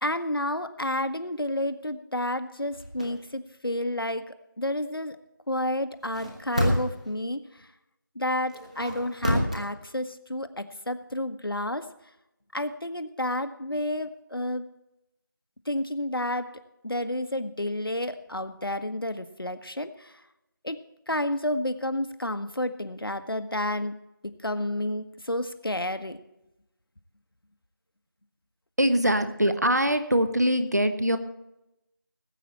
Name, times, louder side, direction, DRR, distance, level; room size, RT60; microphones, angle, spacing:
voice 1, 0.0-5.2 5.5-7.7 8.1-11.8 12.5-14.7 15.6-20.2 20.6-20.8 21.1-24.0 24.2-26.2, left 1 dB, 90° left, 9 dB, 1.4 m, -30 dB
sound 1, 2.7-3.1 6.0-7.1 8.5-9.6, equal, 20° right, 1.3 m, -28 dB
voice 2, 28.8-31.2, equal, 50° right, 10 dB, 1.2 m, -23 dB
18.5 x 8.4 x 4.3 m, 0.88 s
figure-of-eight pair, 180°, 12 cm